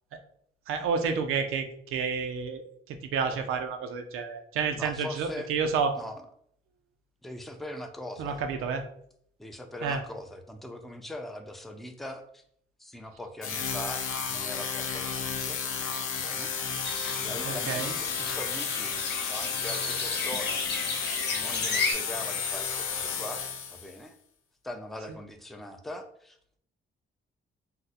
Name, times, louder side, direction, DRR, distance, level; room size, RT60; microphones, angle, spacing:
voice 1, 0.7-6.0 8.2-8.8 9.8-10.0 17.5-17.9, right 5 dB, 90° right, 6 dB, 0.5 m, -30 dB
voice 2, 4.8-5.5 6.0-6.2 7.2-8.4 9.4-12.4 12.8-15.6 16.1-16.5 17.2-19.0 19.2-20.7 21.3-23.4 23.7-24.2 24.6-26.4, left 1 dB, ahead, 5 dB, 0.4 m, -41 dB
sound 1, 13.4-24.0, left 6 dB, 80° left, 0.5 m, -32 dB
sound 2, 16.8-21.9, left 3 dB, 55° left, 0.9 m, -34 dB
2.5 x 2.1 x 4.0 m, 0.66 s
cardioid pair, 85°, 21 cm